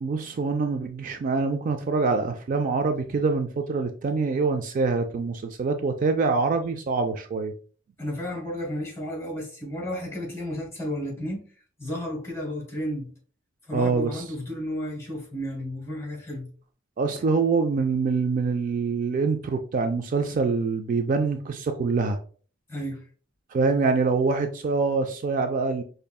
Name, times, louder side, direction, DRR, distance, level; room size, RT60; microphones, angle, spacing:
voice 1, 0.0-7.5 13.7-14.2 17.0-22.2 23.5-25.8, right 4 dB, 40° right, 0.3 m, -25 dB
voice 2, 8.0-11.4 11.8-13.1 13.7-16.5 22.7-23.0, equal, 15° left, 1.5 m, -32 dB
5.3 x 2.6 x 2.2 m
head